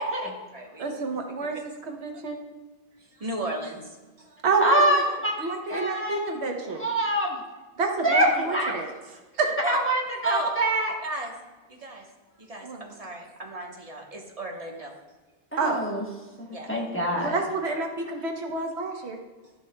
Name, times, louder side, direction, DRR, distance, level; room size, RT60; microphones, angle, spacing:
voice 1, 0.0-1.6 2.1-2.2 3.0-4.4 6.7-6.8 9.6-9.8 10.2-10.5 11.0-11.3 11.7-12.1 12.4-14.9 16.2-16.7 17.7-17.8, right 1 dB, 35° right, 0 dB, 1.2 m, -36 dB
voice 2, 0.8-2.4 4.4-4.8 5.4-6.8 7.8-8.9 9.4-9.5 12.6-12.8 15.6-15.8 17.2-19.2, right 4 dB, 80° right, 3 dB, 1.2 m, -28 dB
voice 3, 4.6-6.3 6.6-7.4 8.0-8.8 9.6-10.9 15.5-16.0 16.4-17.4, right 1 dB, 10° left, -2 dB, 1.0 m, -25 dB
11.5 x 6.7 x 2.2 m, 1.2 s
omnidirectional pair, 1.1 m